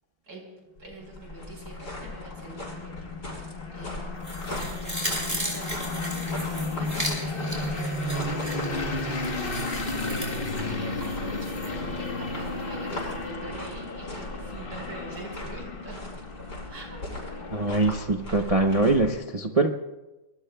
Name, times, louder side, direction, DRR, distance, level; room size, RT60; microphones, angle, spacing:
sound 1, 0.8-19.1, left 1 dB, 60° left, 6.7 m, -39 dB
voice 1, 0.8-2.9 3.2-4.4 4.7-16.0 16.5-17.0, right 2 dB, 85° right, 0 dB, 5.2 m, -44 dB
sound 2, 1.0-18.2, left 2 dB, 35° left, 1.2 m, -34 dB
sound 3, 4.2-11.7 12.1-12.2, equal, 20° right, 4.9 m, -36 dB
voice 2, 17.5-19.7, right 2 dB, 50° right, 3 dB, 0.4 m, -23 dB
26.0 x 23.5 x 2.3 m, 1.0 s
omnidirectional pair, 2.0 m